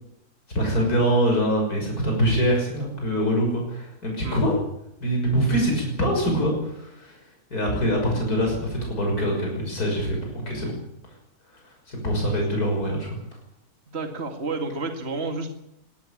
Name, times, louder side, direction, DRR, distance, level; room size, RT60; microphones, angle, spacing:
voice 1, 0.5-4.6 5.0-7.2 7.5-10.2 10.5-10.7 11.9-13.2, equal, 75° left, 0 dB, 6.7 m, -24 dB
voice 2, 13.9-15.5, right 3 dB, 45° right, 5 dB, 2.5 m, -30 dB
22.0 x 17.0 x 8.6 m, 0.81 s
omnidirectional pair, 1.6 m